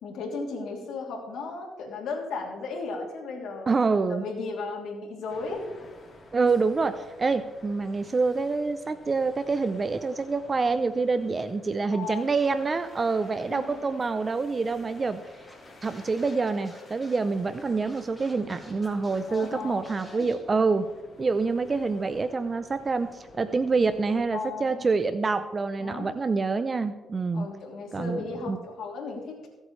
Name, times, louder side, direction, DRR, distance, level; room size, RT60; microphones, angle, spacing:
voice 1, 0.0-3.7 4.1-5.6 11.9-12.2 13.5-13.8 19.3-20.3 24.3-24.8 25.8-26.1 27.3-29.5, left 4 dB, 75° left, 0 dB, 3.1 m, -35 dB
voice 2, 3.7-4.2 6.3-15.5 15.8-20.9 21.2-27.5 27.9-28.6, right 4 dB, 30° right, 11 dB, 0.6 m, -26 dB
sound 1, 5.3-24.2, left 2 dB, 40° left, 3.5 m, -51 dB
Scratching (performance technique), 15.5-20.3, left 1 dB, 10° left, 3.9 m, -52 dB
23.5 x 8.2 x 3.3 m, 1.2 s
cardioid pair, 90°, 0 cm